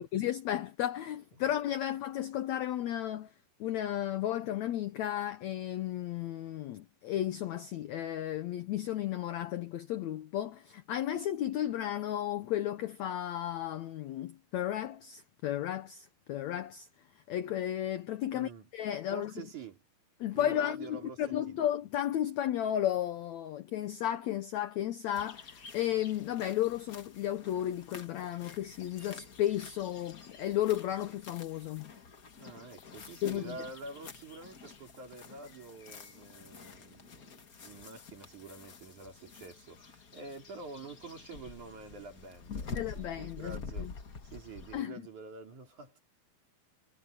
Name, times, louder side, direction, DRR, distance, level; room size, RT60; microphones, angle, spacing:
voice 1, 0.0-3.3 3.6-16.9 17.3-19.3 20.2-31.9 33.2-33.5 42.7-43.9 44.7-45.0, left 12 dB, 80° left, 1.6 m, -34 dB
voice 2, 18.3-18.7 19.1-19.8 20.3-21.6 32.4-44.0 44.2-46.0, right 4 dB, 55° right, 5.2 m, -47 dB
sound 1, 25.1-44.8, left 5 dB, 65° left, 0.8 m, -48 dB
omnidirectional pair, 4.2 m